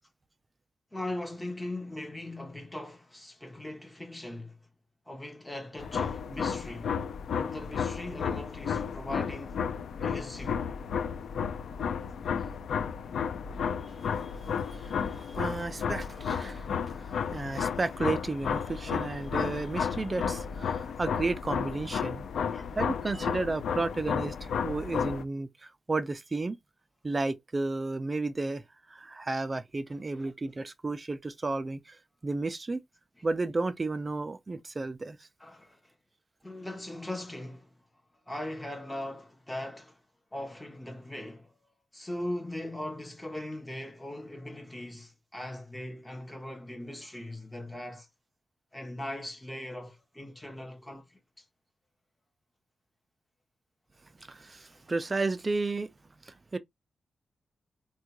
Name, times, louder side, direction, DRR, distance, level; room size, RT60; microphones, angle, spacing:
voice 1, 0.9-4.6 5.1-7.0 7.3-9.6 10.0-10.6 15.4-15.6 22.5-22.7 30.1-30.3 35.4-35.8 36.4-37.7 38.3-40.0 40.3-41.5 41.9-48.1 48.7-51.2, left 1 dB, 10° left, 0.8 m, -40 dB
sound 1, 5.8-25.2, left 7 dB, 75° left, 0.3 m, -33 dB
voice 2, 14.7-22.3 22.8-26.6 27.0-28.6 28.9-32.0 32.2-32.8 33.2-35.2 54.3-55.9 56.3-56.6, right 3 dB, 25° right, 0.3 m, -33 dB
3.5 x 2.2 x 2.9 m
wide cardioid pair, 160°, 0 cm